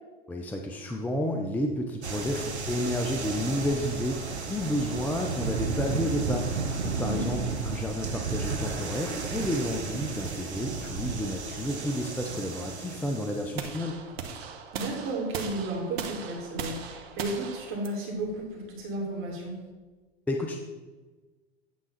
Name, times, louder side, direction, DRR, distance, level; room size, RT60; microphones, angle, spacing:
voice 1, 0.3-14.0 20.3-20.6, left 1 dB, 5° left, 2 dB, 0.5 m, -31 dB
sound 1, 2.0-13.6, right 4 dB, 90° right, 1.1 m, -33 dB
voice 2, 7.0-7.3 14.7-19.6, right 2 dB, 40° right, -1 dB, 2.5 m, -33 dB
sound 2, 13.6-19.6, right 6 dB, 65° right, 1.1 m, -39 dB
9.3 x 3.6 x 5.8 m, 1.3 s
hypercardioid pair, 100°, 33 cm